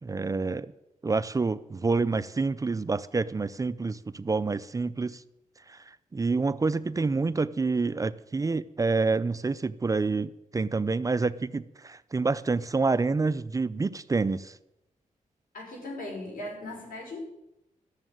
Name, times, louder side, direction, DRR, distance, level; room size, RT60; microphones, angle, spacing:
voice 1, 0.0-0.7 1.0-5.2 5.7-14.5, right 3 dB, 25° right, 0.4 m, -28 dB
voice 2, 15.5-17.2, left 2 dB, 90° left, 5.7 m, -38 dB
13.0 x 7.1 x 9.2 m
wide cardioid pair, 120°, 14 cm